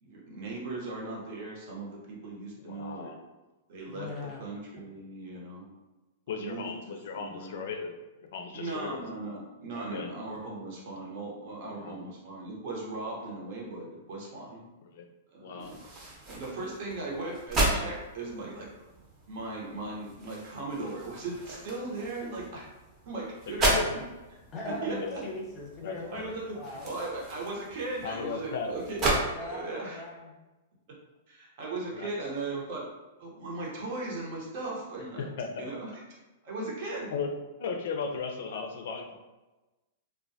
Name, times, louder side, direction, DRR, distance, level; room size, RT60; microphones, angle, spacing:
voice 1, 0.0-3.1 3.7-4.1 4.4-5.7 6.3-7.6 8.5-14.6 15.3-15.8 16.3-18.7 19.3-22.7 23.1-23.7 24.6-25.0 26.1-29.0 29.5-30.0 31.3-32.8 33.2-35.3 35.6-36.0 36.4-37.1, right 2 dB, 55° right, -3 dB, 0.9 m, -38 dB
voice 2, 2.6-3.2 6.3-7.9 8.3-9.4 9.7-10.1 11.7-12.1 13.2-13.3 14.8-15.1 15.4-15.7 23.5-23.9 24.8-25.2 25.8-26.3 28.0-29.1 31.9-32.1 35.2-35.6 36.8-37.3 37.6-39.2, left 5 dB, 65° left, 4 dB, 0.4 m, -37 dB
voice 3, 3.9-4.4 24.5-25.0 25.2-26.2 26.5-26.9 29.3-30.3, left 1 dB, 20° left, -3 dB, 0.8 m, -39 dB
sound 1, 15.6-29.2, right 1 dB, 25° right, 0.7 m, -34 dB
2.2 x 2.1 x 2.6 m, 1.1 s
hypercardioid pair, 135°, 0 cm